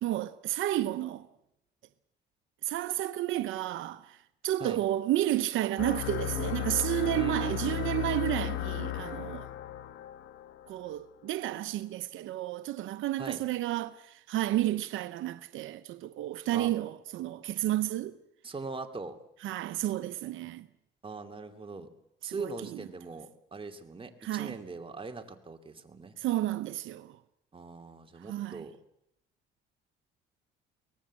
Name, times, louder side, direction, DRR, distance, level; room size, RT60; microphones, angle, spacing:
voice 1, 0.0-1.3 2.6-4.2 4.4-9.5 10.7-18.2 19.4-20.7 22.2-22.8 24.2-24.6 26.2-27.1 28.3-28.6, right 14 dB, 85° right, 0.8 m, -31 dB
sound 1, 5.8-11.0, left 13 dB, 85° left, 1.4 m, -35 dB
voice 2, 7.1-7.9 13.2-13.4 16.5-16.7 18.4-19.2 21.0-21.9 22.2-26.2 27.5-28.7, right 3 dB, 25° right, 2.5 m, -41 dB
23.5 x 18.5 x 7.5 m
cardioid pair, 90°, 20 cm